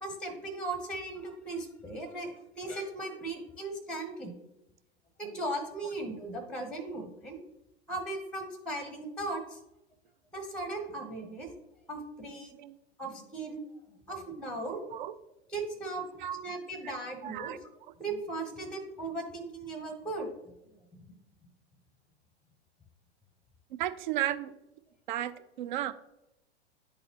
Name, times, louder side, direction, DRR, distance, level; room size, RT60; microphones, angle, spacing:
voice 1, 0.0-4.3 5.2-7.4 7.9-9.6 10.3-11.5 11.9-12.5 13.0-14.8 15.5-16.0 16.4-17.7 18.0-20.3 20.9-21.2, right 2 dB, 5° left, 0.7 m, -37 dB
voice 2, 17.2-17.6 23.7-24.5 25.1-25.3 25.6-25.9, right 12 dB, 45° right, 0.5 m, -33 dB
10.0 x 4.0 x 2.8 m
figure-of-eight pair, 95°, 33 cm